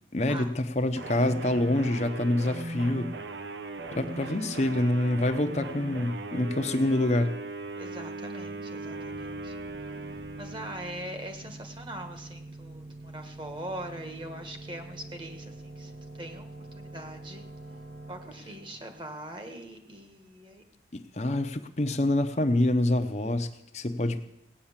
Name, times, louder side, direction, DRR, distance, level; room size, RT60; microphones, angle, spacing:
voice 1, 0.1-3.1 3.9-7.4 20.9-24.4, left 1 dB, 40° left, 6 dB, 0.8 m, -26 dB
sound 1, 1.0-11.2, right 2 dB, 85° right, 1.0 m, -39 dB
voice 2, 4.1-4.5 7.8-9.5 10.4-16.5 16.7-17.5 18.1-20.8, right 1 dB, 25° right, 6 dB, 1.5 m, -42 dB
sound 2, 8.5-20.1, right 2 dB, 45° right, 1.0 m, -46 dB
17.5 x 9.2 x 7.3 m, 0.84 s
head